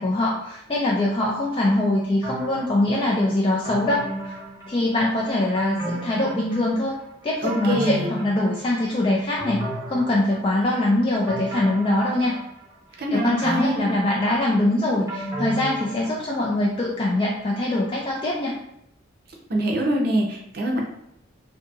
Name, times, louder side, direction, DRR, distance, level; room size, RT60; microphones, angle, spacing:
voice 1, 0.0-4.3 4.7-7.0 7.2-12.3 13.1-18.5, left 1 dB, 25° left, -4 dB, 0.3 m, -23 dB
sound 1, 2.2-3.0 3.6-5.1 5.6-6.9 7.2-8.9 9.4-10.7 11.3-12.7 13.2-16.4 16.8-16.9, right 1 dB, 15° right, 0.8 m, -33 dB
voice 2, 7.4-8.1 13.0-13.9 19.5-20.8, right 1 dB, 50° right, 0 dB, 0.6 m, -24 dB
2.7 x 2.6 x 2.3 m, 0.78 s
head